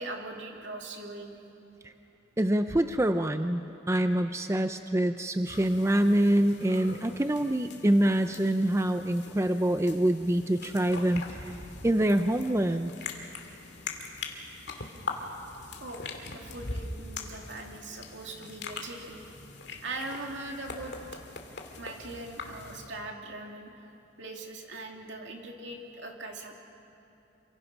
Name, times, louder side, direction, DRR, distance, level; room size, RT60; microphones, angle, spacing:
voice 1, 0.0-1.4 15.8-16.0 16.3-19.2 19.8-21.0 21.8-23.7 24.2-26.6, right 2 dB, 65° right, 2 dB, 2.8 m, -40 dB
voice 2, 2.4-11.4 11.8-12.9, right 1 dB, 15° right, 8 dB, 0.5 m, -25 dB
sound 1, 5.4-22.9, left 3 dB, 60° left, 2.4 m, -42 dB
27.0 x 24.5 x 6.1 m, 2.9 s
head